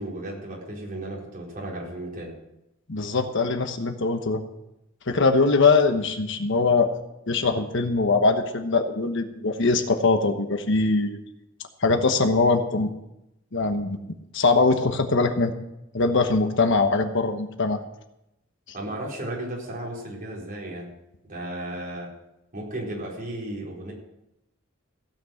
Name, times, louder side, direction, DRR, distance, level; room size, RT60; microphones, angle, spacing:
voice 1, 0.0-2.4 18.7-20.9 21.2-22.1 22.5-23.9, right 1 dB, 45° right, -3 dB, 4.5 m, -34 dB
voice 2, 2.9-4.4 5.1-6.9 7.3-11.2 11.8-12.9 13.5-14.0 14.3-15.5 15.9-17.8, left 3 dB, 65° left, 6 dB, 1.2 m, -22 dB
16.0 x 6.1 x 7.7 m, 0.87 s
head